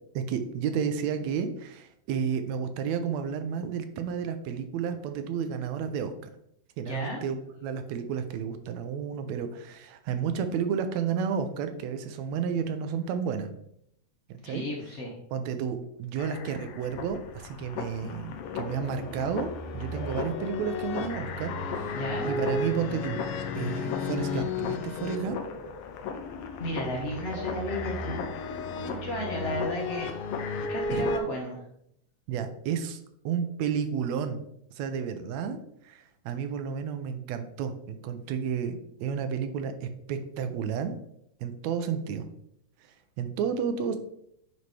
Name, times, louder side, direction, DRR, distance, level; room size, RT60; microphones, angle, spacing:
voice 1, 0.2-6.1 6.8-13.5 14.3-14.7 15.3-23.2 23.6-25.4 30.9-31.1 32.3-34.4 34.7-35.6 35.8-41.0 41.4-42.3 43.2-44.0, right 7 dB, 75° right, 8 dB, 1.8 m, -31 dB
voice 2, 6.9-7.2 14.4-15.1 21.9-22.4 26.6-30.1 30.7-31.6, equal, 60° left, -2 dB, 0.7 m, -34 dB
sound 1, 16.2-31.2, left 4 dB, 75° left, 1.4 m, -34 dB
9.5 x 4.1 x 3.3 m, 0.74 s
omnidirectional pair, 3.3 m